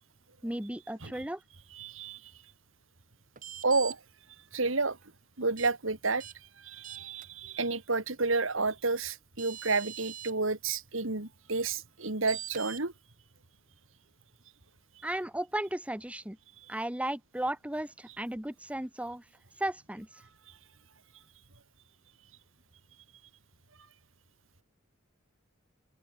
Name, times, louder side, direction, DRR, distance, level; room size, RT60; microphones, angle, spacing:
voice 1, 0.4-1.4 15.0-16.4 16.7-19.2 19.6-20.1, right 1 dB, 5° right, 1.2 m, -35 dB
voice 2, 1.7-2.3 3.6-4.0 4.5-5.0 5.4-12.9 16.6-16.7, right 3 dB, 70° right, 2.6 m, -31 dB
sound 1, 3.4-3.9 5.6-5.7 6.2-6.3 6.8-7.3 8.9-9.0 9.4-10.3 12.3-12.8, right 10 dB, 40° right, 1.6 m, -42 dB
open air
head